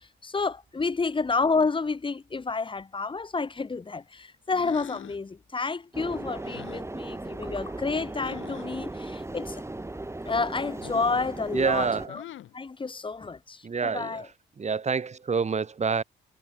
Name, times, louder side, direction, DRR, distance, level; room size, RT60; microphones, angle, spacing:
voice 1, 0.0-9.6 10.2-12.2 12.5-14.3, left 4 dB, 25° left, 1.5 m, -30 dB
sound 1, 4.5-5.3 6.4-6.9 8.2-8.7 10.8-11.2 12.1-12.6, left 12 dB, 75° left, 6.0 m, -43 dB
sound 2, 5.9-12.1, right 2 dB, 15° right, 6.4 m, -37 dB
voice 2, 11.5-12.1 13.6-14.3 14.6-16.0, right 5 dB, 35° right, 3.0 m, -27 dB
cardioid pair, 90°, 20 cm